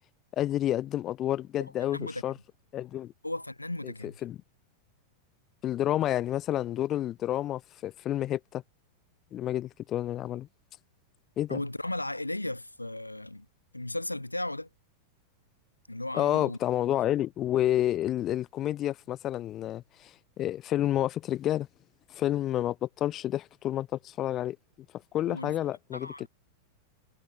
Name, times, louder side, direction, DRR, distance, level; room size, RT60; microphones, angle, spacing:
voice 1, 0.3-2.3 2.7-3.1 3.8-4.4 5.6-8.6 9.3-10.5 11.4-11.6 16.1-20.1 20.4-21.7 22.1-24.6 25.1-26.3, left 13 dB, 30° left, 0.6 m, -29 dB
voice 2, 1.8-2.2 3.2-4.1 11.5-13.5 13.7-14.7 15.9-16.6 25.2-25.6 25.9-26.3, left 1 dB, 85° left, 1.7 m, -35 dB
figure-of-eight pair, 90°, 0 cm